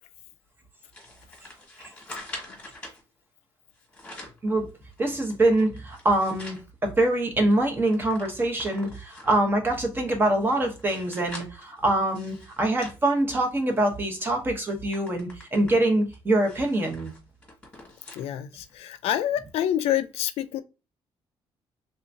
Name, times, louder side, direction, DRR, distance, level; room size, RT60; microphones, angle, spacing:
sound 1, 0.9-3.0 3.7-4.4 4.9-6.6 7.1-7.2 7.4-9.5 10.0-13.8 14.2-14.4 14.7-18.3 18.7-18.8 19.7-19.8, left 1 dB, 10° left, 1.4 m, -45 dB
voice 1, 5.0-17.1, right 1 dB, 20° right, 0.9 m, -24 dB
voice 2, 18.1-20.6, left 11 dB, 75° left, 0.4 m, -27 dB
3.4 x 2.8 x 2.5 m
cardioid pair, 155°, 10 cm